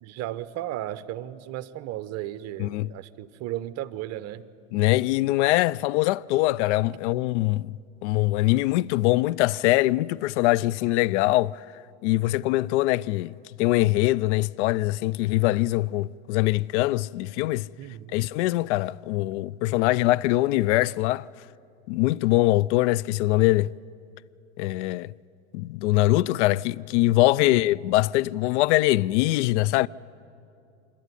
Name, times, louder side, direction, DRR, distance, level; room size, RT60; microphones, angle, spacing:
voice 1, 0.0-4.5 17.8-18.2 27.2-27.5, right 13 dB, 45° right, 0.9 m, -35 dB
voice 2, 4.7-7.8 8.0-11.6 12.0-17.7 18.1-21.3 21.9-23.7 24.6-25.1 25.5-29.9, left 18 dB, 70° left, 0.5 m, -23 dB
26.5 x 12.0 x 9.8 m
supercardioid pair, 110°, 36 cm